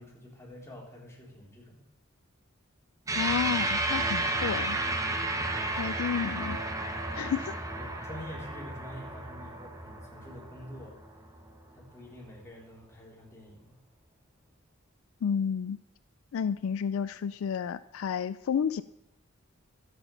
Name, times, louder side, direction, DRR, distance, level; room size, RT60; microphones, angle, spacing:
voice 1, 0.0-1.8 5.5-5.8 7.7-11.0 11.7-13.8, left 1 dB, 15° left, -4 dB, 3.3 m, -47 dB
voice 2, 3.1-4.8 5.7-6.6 7.1-7.6 15.2-15.8 16.3-18.8, left 7 dB, 70° left, 15 dB, 0.3 m, -31 dB
sound 1, 3.1-11.8, right 2 dB, 15° right, 1.0 m, -32 dB
12.5 x 8.1 x 5.6 m, 0.84 s
head